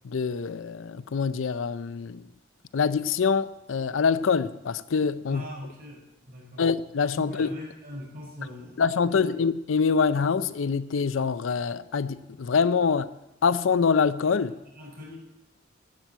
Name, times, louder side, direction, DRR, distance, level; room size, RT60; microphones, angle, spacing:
voice 1, 0.0-2.2 2.7-5.4 6.6-7.5 8.8-13.1 13.4-14.6, left 5 dB, 85° left, 0.5 m, -25 dB
voice 2, 5.3-6.7 7.1-9.4 14.5-15.2, left 1 dB, 50° right, 4.6 m, -42 dB
11.5 x 7.6 x 8.1 m
head